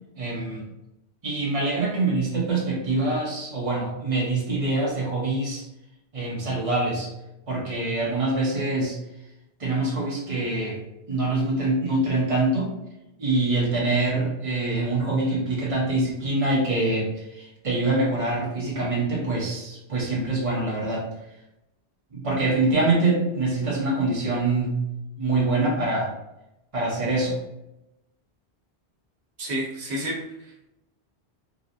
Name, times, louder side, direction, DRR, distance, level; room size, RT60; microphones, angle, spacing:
voice 1, 0.2-0.6 1.2-5.6 6.1-7.1 7.5-9.0 9.6-10.8 11.1-12.7 13.2-21.0 22.1-24.8 25.2-26.1 26.7-27.4, right 2 dB, 35° right, -5 dB, 1.1 m, -25 dB
voice 2, 29.4-30.7, equal, 90° right, -3 dB, 1.2 m, -31 dB
3.7 x 2.3 x 2.7 m, 0.88 s
omnidirectional pair, 1.1 m